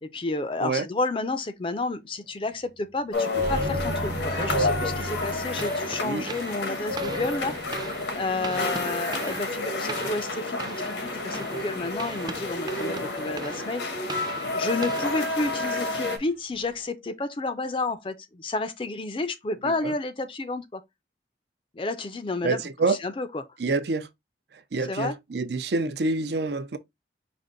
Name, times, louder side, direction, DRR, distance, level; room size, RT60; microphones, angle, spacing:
voice 1, 0.0-7.6 8.1-14.0 14.5-20.8 21.7-22.6 22.9-23.5 24.9-25.2, left 3 dB, 30° left, 0.4 m, -31 dB
sound 1, 3.1-16.2, left 2 dB, 85° left, 1.1 m, -30 dB
sound 2, 3.3-8.7 16.1-16.2 16.6-16.8, right 1 dB, 50° right, 1.1 m, -35 dB
sound 3, 5.0-16.2, right 3 dB, 25° right, 0.5 m, -41 dB
voice 2, 19.6-19.9 22.4-23.0 23.6-24.1 24.5-26.8, right 3 dB, 70° right, 0.6 m, -27 dB
5.1 x 2.5 x 3.7 m
head